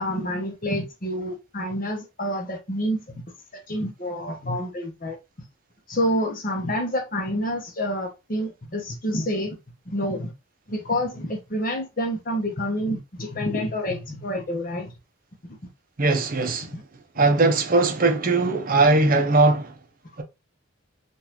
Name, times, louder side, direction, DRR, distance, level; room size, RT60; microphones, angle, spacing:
voice 1, 0.0-3.2 3.7-5.2 5.9-9.6 9.9-10.3 10.7-14.9 15.4-15.6 16.6-16.8, equal, 45° left, 1.0 m, -28 dB
voice 2, 16.0-16.7 17.2-19.7, right 3 dB, 45° right, 0.7 m, -20 dB
3.9 x 2.6 x 2.8 m
head